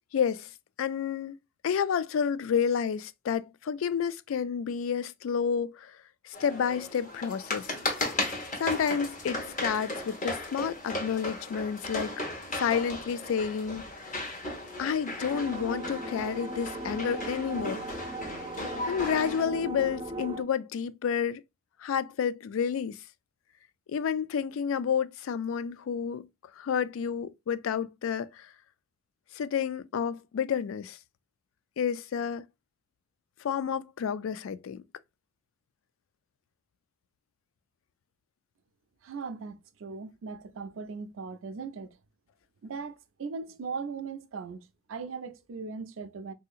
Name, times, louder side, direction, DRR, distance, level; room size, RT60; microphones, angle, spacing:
voice 1, 0.1-0.5 0.8-1.4 1.6-6.0 6.2-7.7 8.6-12.1 12.5-13.8 14.8-17.8 18.9-21.4 21.8-23.0 23.9-26.3 26.6-28.5 29.3-31.0 31.8-32.4 33.4-34.8, left 7 dB, 80° left, 0.3 m, -30 dB
sound 1, 6.3-19.4, left 2 dB, 40° left, 1.1 m, -36 dB
sound 2, 15.3-20.4, right 2 dB, 20° right, 0.4 m, -38 dB
voice 2, 39.0-42.0 42.6-46.3, right 5 dB, 75° right, 0.5 m, -39 dB
3.7 x 2.7 x 2.4 m
head